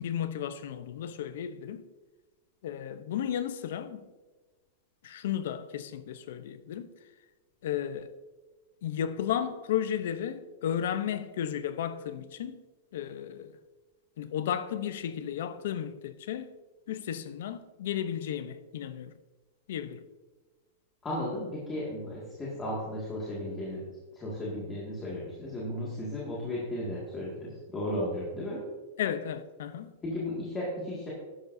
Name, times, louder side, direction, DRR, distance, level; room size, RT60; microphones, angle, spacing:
voice 1, 0.0-1.8 2.6-4.0 5.0-6.9 7.6-8.1 8.8-12.6 12.9-13.5 14.2-16.5 16.9-19.1 19.7-20.1 29.0-29.9, left 9 dB, 65° left, 0.7 m, -34 dB
voice 2, 21.0-23.8 24.1-28.6 30.0-31.1, left 1 dB, 15° left, 2.1 m, -35 dB
12.5 x 11.0 x 2.7 m
supercardioid pair, 165°, 0 cm